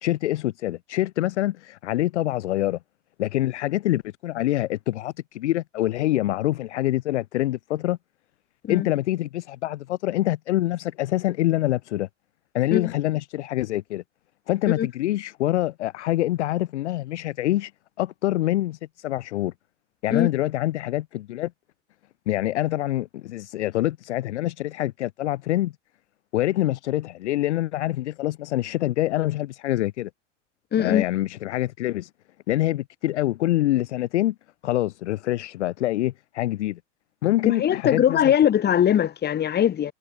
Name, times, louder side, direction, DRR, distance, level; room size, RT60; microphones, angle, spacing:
voice 1, 0.0-2.8 3.2-8.0 8.7-12.1 12.5-14.0 14.5-17.7 18.0-18.8 19.0-19.5 20.0-21.5 22.3-25.7 26.3-30.1 30.8-32.1 32.5-34.3 34.6-36.8 37.2-38.3, left 15 dB, 60° left, 1.5 m, -25 dB
voice 2, 30.7-31.0 37.4-39.9, left 10 dB, 25° left, 2.2 m, -21 dB
figure-of-eight pair, 90°, 39 cm